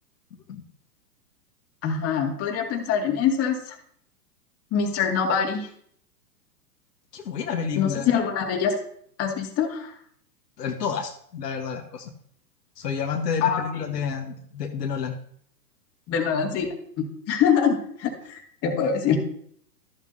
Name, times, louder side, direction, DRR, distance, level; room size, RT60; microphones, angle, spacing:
voice 1, 1.8-3.8 4.7-5.7 7.8-8.8 9.2-9.9 13.4-13.8 16.1-16.7 17.3-19.2, left 7 dB, 30° left, 1 dB, 2.3 m, -24 dB
voice 2, 7.1-8.1 10.6-12.1 12.8-15.1, left 6 dB, 75° left, 3 dB, 1.5 m, -30 dB
13.5 x 7.4 x 2.8 m, 0.64 s
hypercardioid pair, 120°, 49 cm